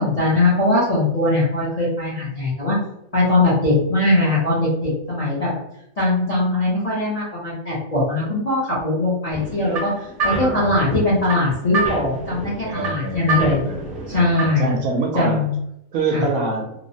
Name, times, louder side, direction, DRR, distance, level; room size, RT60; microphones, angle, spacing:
voice 1, 0.0-2.8 3.1-5.5 6.0-9.9 10.2-13.6 14.1-14.7 15.1-15.5 16.1-16.2, left 2 dB, 40° left, -8 dB, 0.5 m, -20 dB
sound 1, 9.3-14.7, right 3 dB, 45° right, 0.8 m, -28 dB
voice 2, 10.2-10.8 12.6-15.4 15.9-16.7, right 3 dB, 80° right, 2 dB, 1.0 m, -26 dB
2.9 x 2.1 x 2.6 m, 0.80 s
omnidirectional pair, 1.5 m